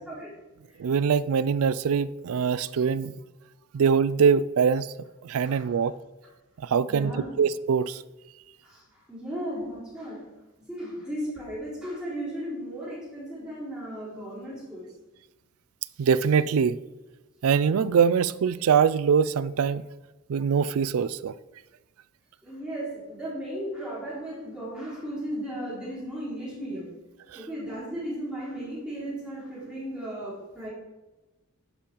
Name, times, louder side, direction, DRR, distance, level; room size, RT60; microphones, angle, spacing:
voice 1, 0.8-3.1 3.7-4.9 5.2-6.0 6.6-7.1 7.4-8.0 16.0-16.8 17.4-19.8 20.3-21.3 27.3-27.4, right 6 dB, 75° right, 0.4 m, -23 dB
voice 2, 5.4-5.9 6.9-7.3 8.6-8.8 9.1-10.2 10.6-14.9 22.4-26.9 27.3-30.7, equal, 5° right, 3.6 m, -35 dB
11.5 x 5.5 x 4.5 m
head